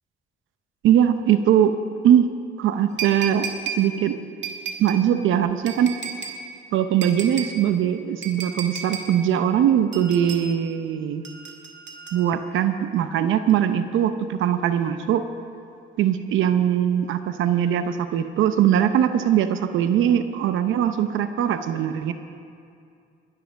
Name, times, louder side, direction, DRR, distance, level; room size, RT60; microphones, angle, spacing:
voice 1, 0.8-1.7 2.0-2.3 2.6-3.5 3.8-4.2 4.8-6.0 6.7-11.2 12.1-15.3 16.0-22.1, right 10 dB, 80° right, 9 dB, 0.7 m, -21 dB
sound 1, 3.0-3.9 4.4-5.0 5.7-6.4 7.0-7.6 8.2-9.1 9.9-10.5 11.2-12.5 13.5-13.6, right 6 dB, 65° right, 2.1 m, -33 dB
21.5 x 7.6 x 6.3 m, 2.4 s
cardioid pair, 90°, 20 cm